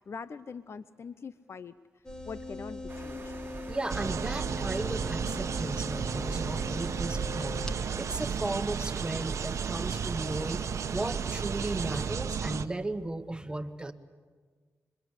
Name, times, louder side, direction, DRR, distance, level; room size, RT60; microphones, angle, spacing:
voice 1, 0.1-1.8 2.2-3.3, left 5 dB, 55° left, 14 dB, 0.6 m, -42 dB
sound 1, 2.0-7.7, left 2 dB, 10° left, 2.2 m, -41 dB
sound 2, 2.9-12.1, right 4 dB, 40° right, 1.5 m, -46 dB
voice 2, 3.7-10.6 10.9-13.9, right 2 dB, 15° right, 9 dB, 1.4 m, -35 dB
sound 3, 3.9-12.7, right 6 dB, 75° right, 1.0 m, -33 dB
26.5 x 23.0 x 8.1 m, 1.5 s
cardioid pair, 80°, 5 cm